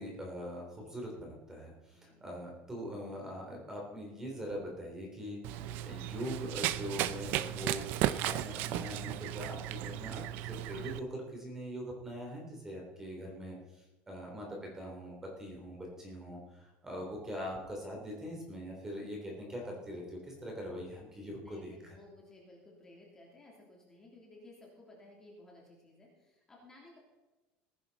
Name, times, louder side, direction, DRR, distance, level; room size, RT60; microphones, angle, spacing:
voice 1, 0.0-22.0, equal, 10° right, 0 dB, 3.3 m, -42 dB
Run, 5.4-11.0, right 13 dB, 55° right, 0.6 m, -35 dB
voice 2, 21.3-27.0, left 2 dB, 15° left, -2 dB, 3.1 m, -57 dB
19.0 x 10.5 x 4.1 m, 1.1 s
cardioid pair, 160°, 4 cm